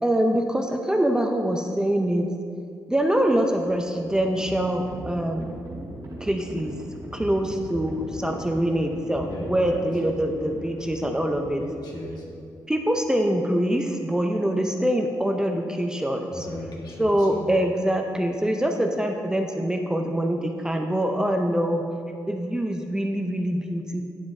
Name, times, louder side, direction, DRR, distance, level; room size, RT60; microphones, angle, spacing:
voice 1, 0.0-2.3 2.9-5.5 6.2-6.8 7.1-11.6 12.7-16.5 17.0-21.8 22.3-24.0, right 1 dB, 10° right, 3 dB, 0.6 m, -24 dB
Livestock farm animals working animals, 3.3-12.2, right 1 dB, 55° right, 1.8 m, -40 dB
voice 2, 9.3-10.3 11.5-12.2 16.3-17.5, left 1 dB, 60° left, -2 dB, 1.7 m, -37 dB
9.0 x 7.2 x 2.7 m, 2.4 s
cardioid pair, 65°, 8 cm